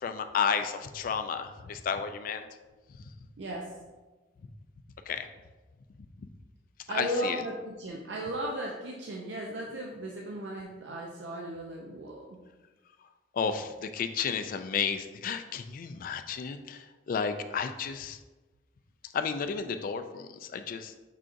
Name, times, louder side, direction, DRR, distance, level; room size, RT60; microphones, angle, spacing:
voice 1, 0.0-2.4 5.1-5.3 6.9-7.4 13.3-18.2 19.1-20.9, left 6 dB, 50° left, 9 dB, 0.3 m, -32 dB
voice 2, 3.4-3.8 6.9-12.4, right 1 dB, 85° right, -1 dB, 0.5 m, -36 dB
5.6 x 3.8 x 2.5 m, 1.2 s
head